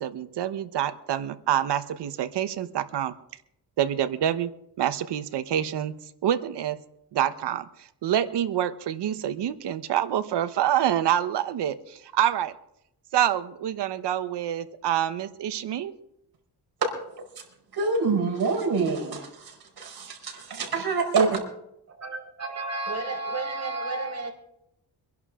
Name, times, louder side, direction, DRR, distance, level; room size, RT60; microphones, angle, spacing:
voice 1, 0.0-3.1 3.8-4.5 4.8-5.9 6.2-6.8 7.1-7.7 8.0-12.5 13.1-15.9, right 10 dB, 85° right, 12 dB, 1.1 m, -26 dB
voice 2, 17.7-21.4, right 4 dB, 70° right, 2 dB, 4.9 m, -26 dB
voice 3, 22.0-24.3, right 3 dB, 40° right, 0 dB, 5.4 m, -31 dB
24.5 x 11.0 x 3.7 m, 0.78 s
cardioid pair, 80°, 40 cm